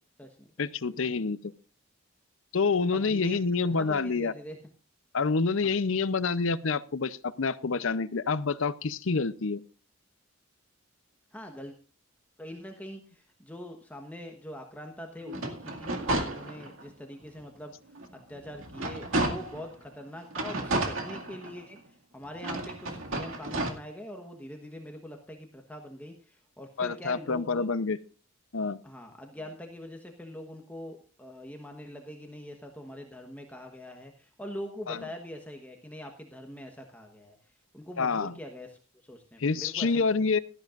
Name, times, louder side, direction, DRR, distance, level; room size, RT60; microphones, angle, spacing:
voice 1, 0.6-1.4 2.5-4.3 5.1-9.6 26.8-28.0 28.5-28.8 34.9-35.0 38.0-38.3 39.4-40.4, left 4 dB, 70° left, 16 dB, 0.7 m, -27 dB
voice 2, 2.9-3.4 3.7-4.7 5.6-5.7 11.3-11.7 12.4-17.7 18.3-27.7 28.8-40.1, equal, 5° left, 3 dB, 1.2 m, -43 dB
sound 1, 15.2-16.9 17.4-17.5 17.9-19.7 20.3-21.8 22.4-23.7, right 2 dB, 75° right, 2.2 m, -32 dB
17.0 x 13.0 x 2.5 m, 0.35 s
head